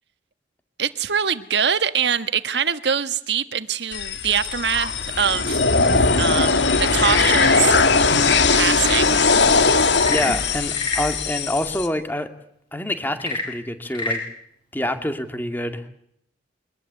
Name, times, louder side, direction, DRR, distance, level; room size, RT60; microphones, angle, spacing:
voice 1, 0.8-5.6 6.2-7.8 8.5-9.2, right 7 dB, 70° right, 12 dB, 1.5 m, -23 dB
sound 1, 3.9-11.9, left 4 dB, 85° left, 2.4 m, -19 dB
Frog / Percussion / Wood, 9.9-11.2 13.1-14.3, left 2 dB, 30° left, 7.6 m, -28 dB
voice 2, 10.1-12.3 12.7-14.2 14.7-15.8, left 1 dB, 10° left, 8 dB, 2.3 m, -26 dB
24.0 x 21.0 x 8.3 m, 0.71 s
head